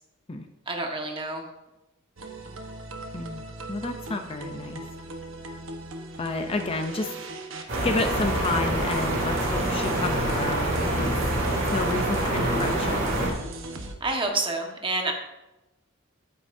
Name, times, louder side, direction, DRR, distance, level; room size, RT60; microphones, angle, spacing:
voice 1, 0.7-1.4 14.0-15.1, right 2 dB, 25° right, 2 dB, 1.4 m, -28 dB
sound 1, 2.2-13.9, right 2 dB, 90° right, 1.2 m, -38 dB
voice 2, 3.1-4.8 6.2-7.2 7.8-11.2 11.7-13.0, left 2 dB, 30° left, 6 dB, 0.6 m, -30 dB
sound 2, 7.7-13.3, right 1 dB, 70° right, 3.0 m, -26 dB
12.5 x 8.7 x 2.7 m, 0.99 s
head